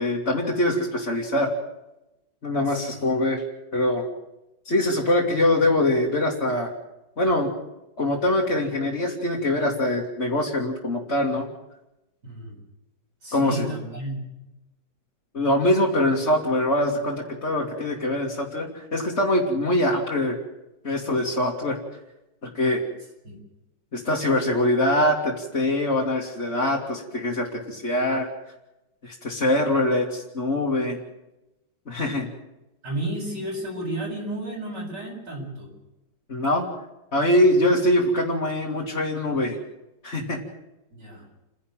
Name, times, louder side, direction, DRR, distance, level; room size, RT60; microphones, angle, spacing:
voice 1, 0.0-1.5 2.4-3.4 3.7-4.0 4.7-6.7 7.2-7.5 8.0-11.5 13.3-13.6 15.3-20.4 20.8-21.8 22.5-22.8 23.9-28.3 29.0-31.0 31.9-32.3 36.3-36.7 37.1-39.6 40.0-40.4, left 1 dB, 40° left, -4 dB, 2.6 m, -23 dB
voice 2, 2.7-3.0 12.2-12.5 13.2-14.2 23.2-23.4 32.8-35.7 40.9-41.3, right 1 dB, 70° right, -2 dB, 8.4 m, -32 dB
29.5 x 11.0 x 9.0 m, 0.95 s
omnidirectional pair, 1.9 m